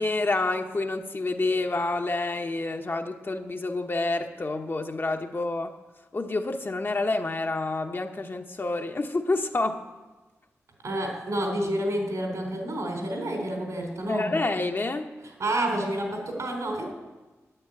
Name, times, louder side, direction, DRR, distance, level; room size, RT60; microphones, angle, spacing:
voice 1, 0.0-5.7 6.1-9.8 14.1-15.1, left 2 dB, 40° left, 4 dB, 1.0 m, -28 dB
voice 2, 10.8-14.4 15.2-16.9, right 1 dB, 75° right, 1 dB, 3.8 m, -29 dB
10.0 x 10.0 x 8.8 m, 1.2 s
wide cardioid pair, 80°, 5 cm